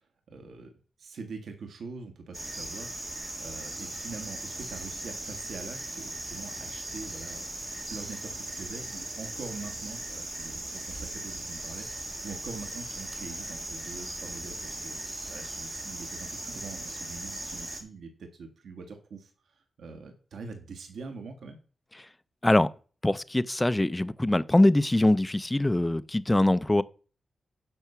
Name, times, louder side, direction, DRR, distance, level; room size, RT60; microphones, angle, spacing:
voice 1, 0.3-0.7 1.0-7.4 7.9-21.6, right 4 dB, 85° right, 1.8 m, -44 dB
sound 1, 2.3-17.8, right 1 dB, 25° right, 2.2 m, -38 dB
voice 2, 23.0-26.8, left 1 dB, 10° left, 0.5 m, -23 dB
10.5 x 5.7 x 6.8 m
wide cardioid pair, 125°, 0 cm